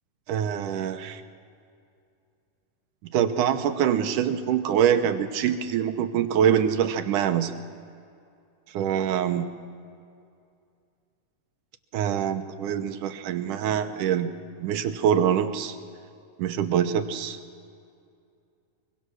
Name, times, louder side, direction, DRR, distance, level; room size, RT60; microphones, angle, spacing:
voice 1, 0.3-1.2 3.1-7.5 8.7-9.5 11.9-14.3 14.6-15.8 16.4-17.4, right 9 dB, 80° right, 8 dB, 2.5 m, -24 dB
23.0 x 23.0 x 6.3 m, 2.4 s
omnidirectional pair, 3.6 m